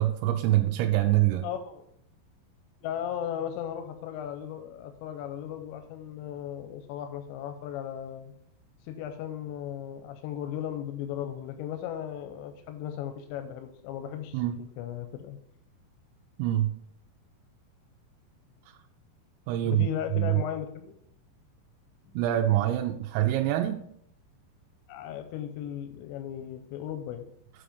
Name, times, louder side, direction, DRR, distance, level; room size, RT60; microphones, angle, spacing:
voice 1, 0.0-1.4 14.3-14.6 16.4-16.7 19.5-19.9 20.1-20.4 22.2-23.8, right 14 dB, 85° right, 3 dB, 2.8 m, -25 dB
voice 2, 1.4-1.8 2.8-8.3 8.8-15.4 19.6-21.0 24.9-27.3, left 10 dB, 90° left, 7 dB, 2.9 m, -36 dB
7.6 x 5.0 x 5.2 m, 0.70 s
omnidirectional pair, 5.1 m